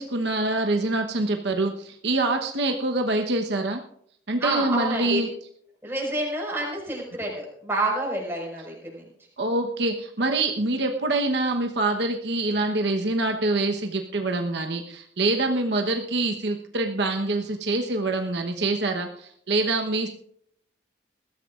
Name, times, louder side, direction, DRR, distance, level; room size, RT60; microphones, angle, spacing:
voice 1, 0.0-3.8 4.3-5.3 9.4-20.1, right 2 dB, 70° right, 3 dB, 1.1 m, -25 dB
voice 2, 4.4-5.2 5.8-9.0, right 1 dB, 10° right, -2 dB, 5.0 m, -28 dB
21.0 x 14.0 x 2.5 m, 0.68 s
head